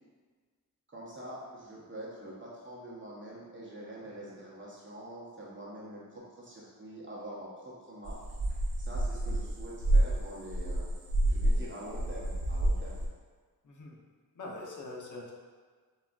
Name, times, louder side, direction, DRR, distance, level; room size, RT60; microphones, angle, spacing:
voice 1, 0.9-8.2 8.8-10.9 11.2-13.0, right 1 dB, 35° right, -5 dB, 0.8 m, -45 dB
sound 1, 8.0-11.6 11.9-13.1, right 1 dB, 85° right, 0.6 m, -28 dB
voice 2, 13.6-14.0 14.3-15.3, left 2 dB, 55° left, -2 dB, 0.7 m, -43 dB
3.7 x 2.3 x 2.3 m, 1.5 s
cardioid pair, 65°, 36 cm